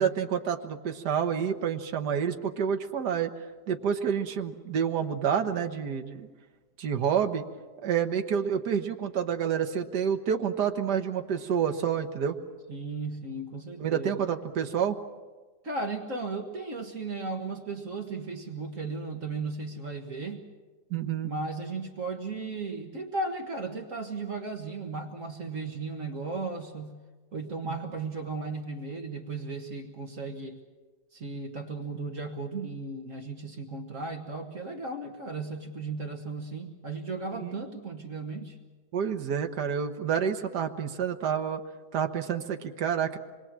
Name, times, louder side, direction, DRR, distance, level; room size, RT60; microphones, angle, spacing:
voice 1, 0.0-3.3 3.7-6.3 6.8-7.4 7.8-12.4 13.8-15.0 20.9-21.3 27.6-27.7 37.4-37.5 38.9-41.6 41.9-43.2, right 8 dB, 75° right, 5 dB, 1.8 m, -28 dB
voice 2, 12.7-14.2 15.6-20.4 21.2-27.0 27.3-30.6 31.1-38.6, right 3 dB, 50° right, 3 dB, 1.9 m, -35 dB
26.5 x 22.0 x 7.5 m, 1.3 s
omnidirectional pair, 1.8 m